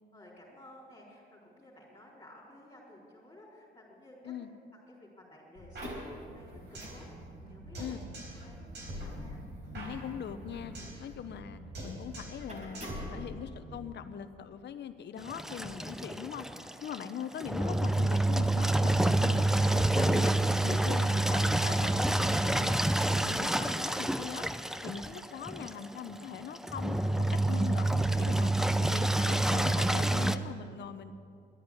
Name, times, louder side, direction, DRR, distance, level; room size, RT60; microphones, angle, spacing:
voice 1, 0.1-4.3 4.7-7.1 7.5-8.0 8.3-9.4, left 1 dB, 20° left, -6 dB, 4.3 m, -54 dB
sound 1, 5.5-13.8, equal, 40° right, 4.8 m, -47 dB
sound 2, 5.7-7.0 7.3-7.4 7.7-8.5 8.7-11.0 11.3-11.5 11.7-12.5 12.7-13.7, equal, 60° right, 4.4 m, -44 dB
voice 2, 9.7-10.7 11.0-12.8 13.1-16.5 16.8-28.5 28.8-31.2, left 8 dB, 60° left, 10 dB, 0.9 m, -42 dB
Engine, 15.2-30.4, right 1 dB, ahead, 0.5 m, -28 dB
12.0 x 9.6 x 10.0 m, 2.4 s
cardioid pair, 90°, 20 cm